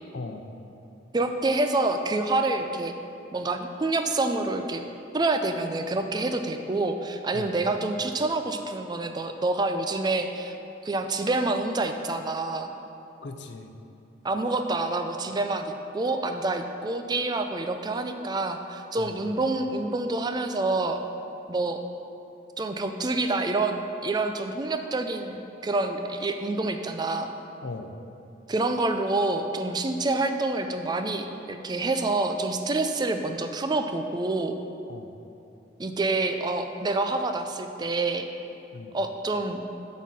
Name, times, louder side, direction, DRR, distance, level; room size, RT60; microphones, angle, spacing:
voice 1, 0.1-0.5 7.3-7.6 13.2-13.7 19.0-19.2 27.6-27.9 34.9-35.1 38.7-39.0, left 3 dB, 70° left, 6 dB, 0.6 m, -38 dB
voice 2, 1.1-2.9 3.3-4.8 5.1-10.5 10.8-12.7 14.2-21.0 21.5-21.8 22.6-27.3 28.5-34.6 35.8-38.3 38.9-39.6, right 2 dB, 25° right, 6 dB, 0.4 m, -27 dB
7.9 x 4.2 x 6.2 m, 2.7 s
head